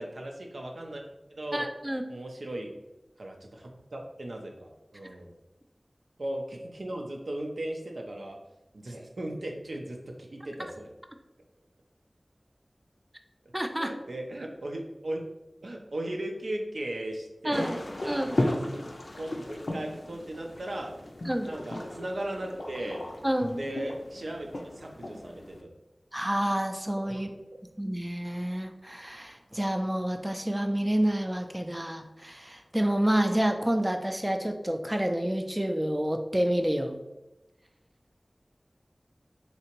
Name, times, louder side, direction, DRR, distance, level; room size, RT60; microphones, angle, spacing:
voice 1, 0.0-1.7 2.1-2.7 3.2-5.3 6.2-8.4 8.7-10.9 13.7-15.2 15.6-17.8 18.0-18.8 19.2-20.9 21.4-23.0 23.5-25.8 27.1-27.4, right 1 dB, 85° right, 1 dB, 0.5 m, -37 dB
voice 2, 1.5-2.0 13.5-13.9 17.4-17.7 18.1-18.4 21.3-21.5 23.2-23.6 26.1-27.3 27.8-37.0, right 1 dB, 15° right, 5 dB, 0.3 m, -28 dB
sound 1, 17.5-25.6, left 1 dB, 70° left, 0.4 m, -36 dB
3.3 x 2.9 x 2.9 m, 0.96 s
wide cardioid pair, 40°, 0 cm